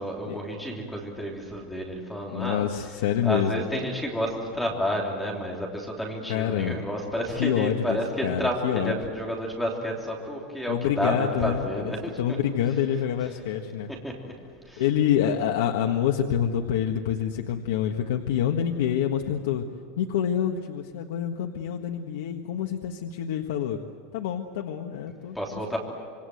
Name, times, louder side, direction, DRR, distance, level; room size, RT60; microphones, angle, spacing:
voice 1, 0.0-2.6 3.2-12.1 14.0-14.3 14.7-14.8 25.3-25.8, equal, 5° left, -1 dB, 3.4 m, -30 dB
voice 2, 2.3-3.6 6.3-6.8 7.4-9.0 10.7-13.9 14.8-19.7 20.0-23.8 24.1-25.8, left 9 dB, 85° left, 3 dB, 1.5 m, -27 dB
26.5 x 24.5 x 8.0 m, 2.1 s
supercardioid pair, 170°, 0 cm